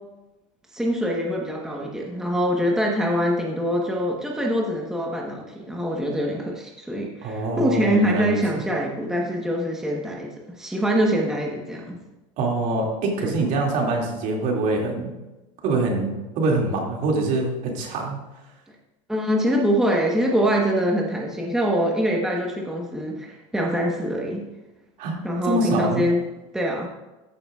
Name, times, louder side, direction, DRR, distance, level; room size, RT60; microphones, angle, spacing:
voice 1, 0.7-12.0 13.2-13.3 19.1-24.4 25.2-26.2 26.5-26.9, equal, 5° right, -1 dB, 1.2 m, -24 dB
voice 2, 7.2-8.6 12.4-15.1 15.6-18.2 25.0-25.2 25.4-26.0, right 2 dB, 55° right, 0 dB, 2.4 m, -24 dB
14.0 x 6.9 x 2.4 m, 1.1 s
supercardioid pair, 115°, 16 cm